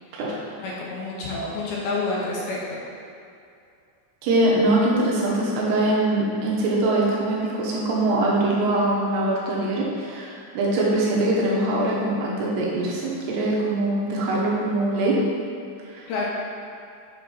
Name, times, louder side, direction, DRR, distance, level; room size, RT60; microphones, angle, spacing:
voice 1, 0.6-2.8 16.1-16.3, left 3 dB, 70° left, -5 dB, 2.5 m, -28 dB
voice 2, 4.2-15.2 15.8-16.1, right 2 dB, 75° right, -5 dB, 3.2 m, -23 dB
7.3 x 4.6 x 5.5 m, 2.5 s
omnidirectional pair, 5.0 m